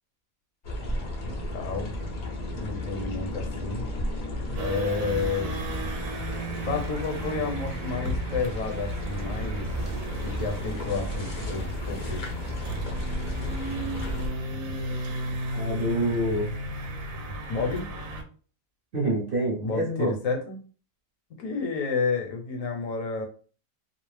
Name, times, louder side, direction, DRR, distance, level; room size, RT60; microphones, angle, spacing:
sound 1, 0.6-14.3, left 2 dB, 50° left, 0.5 m, -34 dB
voice 1, 1.2-1.9 2.5-3.9 4.6-5.6 6.6-9.7 10.2-12.3 17.5-17.9 19.6-20.6 21.4-23.2, left 4 dB, 75° left, 3 dB, 1.0 m, -30 dB
sound 2, 4.6-18.2, right 2 dB, 75° right, 1.0 m, -34 dB
voice 2, 15.5-16.5 18.9-20.2, right 1 dB, 50° right, -2 dB, 0.8 m, -27 dB
2.5 x 2.0 x 3.1 m, 0.40 s
omnidirectional pair, 1.5 m